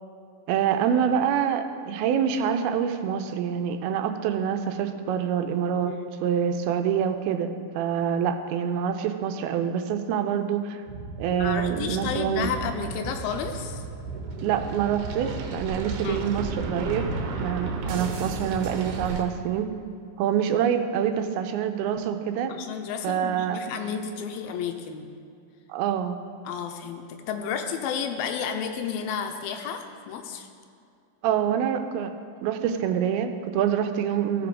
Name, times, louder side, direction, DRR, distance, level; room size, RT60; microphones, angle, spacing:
voice 1, 0.5-6.0 6.2-10.8 11.2-12.5 14.4-17.1 17.4-19.7 20.2-22.5 23.0-23.6 25.7-26.2 31.2-32.1 32.4-34.5, right 8 dB, 90° right, 8 dB, 2.5 m, -26 dB
sound 1, 10.9-19.2, right 3 dB, 70° right, 2.0 m, -33 dB
voice 2, 11.3-13.8 16.0-16.3 22.5-25.1 26.4-30.5, left 7 dB, 85° left, 5 dB, 2.6 m, -32 dB
16.0 x 6.0 x 4.9 m, 2.4 s
omnidirectional pair, 4.4 m